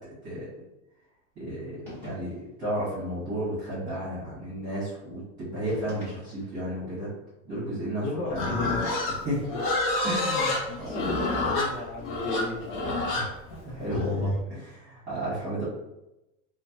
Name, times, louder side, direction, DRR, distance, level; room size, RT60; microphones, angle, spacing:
voice 1, 1.4-1.8 2.0-7.1 7.4-8.0 8.3-8.5 9.2-9.5 10.0-10.5 10.8-11.2 12.8-13.4 13.6-15.6, right 1 dB, 20° right, -11 dB, 1.0 m, -33 dB
sound 1, 1.8-2.6 5.6-6.7, equal, 5° left, 0.7 m, -44 dB
voice 2, 8.0-9.0 10.8-12.6, left 2 dB, 85° left, -1 dB, 0.8 m, -34 dB
Livestock farm animals working animals, 8.3-14.4, left 2 dB, 35° left, 0.5 m, -28 dB
3.1 x 2.1 x 2.7 m, 0.92 s
supercardioid pair, 175°, 40 cm